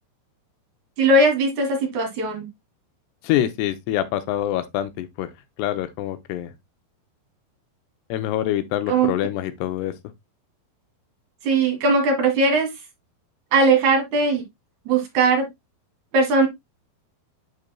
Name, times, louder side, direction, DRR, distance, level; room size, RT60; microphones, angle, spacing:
voice 1, 1.0-2.5 8.9-9.1 11.4-12.7 13.5-14.4 14.9-15.5 16.1-16.5, right 3 dB, 55° right, 2.4 m, -19 dB
voice 2, 3.2-5.3 5.6-6.5 8.1-9.9, left 12 dB, 85° left, 2.8 m, -25 dB
11.5 x 4.0 x 2.2 m
omnidirectional pair, 4.7 m